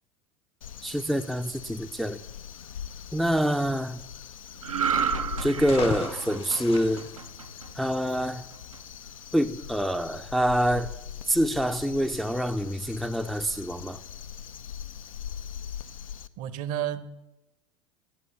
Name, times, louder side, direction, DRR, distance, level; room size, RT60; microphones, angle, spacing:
Crow, 0.6-16.3, left 8 dB, 85° left, 0.4 m, -41 dB
voice 1, 0.8-2.2 3.1-4.0 5.4-7.1 7.8-8.4 9.3-10.9 11.3-14.0, equal, ahead, 0.4 m, -26 dB
sound 1, 4.6-8.1 8.5-8.8, right 6 dB, 85° right, 0.6 m, -31 dB
sound 2, 5.5-8.1, left 8 dB, 35° left, 0.7 m, -39 dB
voice 2, 16.4-17.2, right 11 dB, 50° right, 0.8 m, -32 dB
11.5 x 7.9 x 6.8 m
figure-of-eight pair, 80°, 17 cm